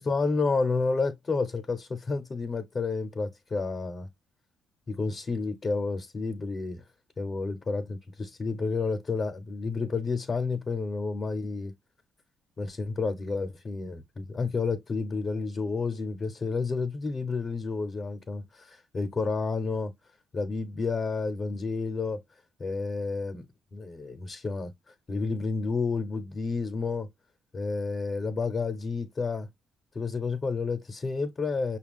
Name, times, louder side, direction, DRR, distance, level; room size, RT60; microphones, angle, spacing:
voice 1, 0.0-4.1 4.9-6.8 7.2-11.7 12.6-19.9 20.3-22.2 22.6-23.5 23.7-27.1 27.5-29.5 29.9-31.8, left 4 dB, 40° left, 0.8 m, -30 dB
5.7 x 2.3 x 3.5 m
cardioid pair, 90°, 0 cm